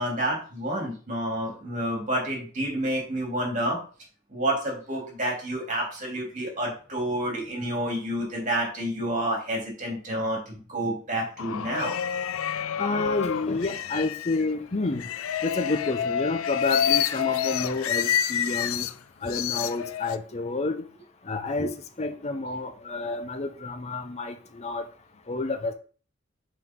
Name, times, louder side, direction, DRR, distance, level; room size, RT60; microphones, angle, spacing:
voice 1, 0.0-3.8 4.3-12.0 21.6-21.7 23.0-23.1, right 1 dB, 40° right, -1 dB, 2.9 m, -29 dB
little house of pain, 11.4-14.4 15.0-18.9 19.3-20.2, left 9 dB, 85° left, 0.4 m, -28 dB
voice 2, 12.8-15.0 15.4-18.9 19.2-20.8 21.3-21.7 22.0-24.8 25.3-25.7, left 3 dB, 35° left, 6 dB, 0.7 m, -29 dB
5.9 x 4.9 x 3.7 m, 0.39 s
head